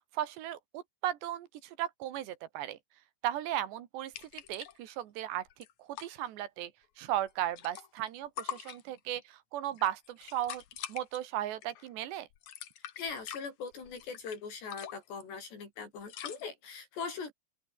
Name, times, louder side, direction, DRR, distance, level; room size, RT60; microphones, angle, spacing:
voice 1, 0.1-2.8 3.2-5.5 5.8-6.7 7.0-10.6 10.9-12.3, right 12 dB, 85° right, 3.9 m, -36 dB
sound 1, 4.1-4.9 5.2-5.3 5.5-6.1 7.1-8.1 8.4-9.2 9.7-11.2 11.6-11.9 12.3-14.4 14.7-15.2 16.1-16.4, left 11 dB, 55° left, 2.3 m, -44 dB
voice 2, 13.0-17.3, left 5 dB, 80° left, 8.6 m, -41 dB
open air
omnidirectional pair, 4.8 m